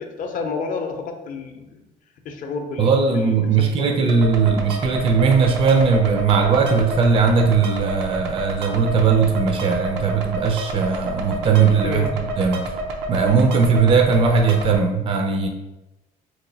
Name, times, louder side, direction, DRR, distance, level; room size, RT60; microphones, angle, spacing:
voice 1, 0.0-1.8 2.2-3.9 4.4-4.5 11.8-12.1, left 4 dB, 50° left, 4 dB, 0.5 m, -30 dB
voice 2, 2.8-12.0 12.4-12.6 13.1-15.5, right 5 dB, 35° right, 4 dB, 0.4 m, -18 dB
sound 1, 4.1-14.8, right 2 dB, 90° right, 0.5 m, -29 dB
2.9 x 2.2 x 3.9 m, 0.99 s
cardioid pair, 110°, 17 cm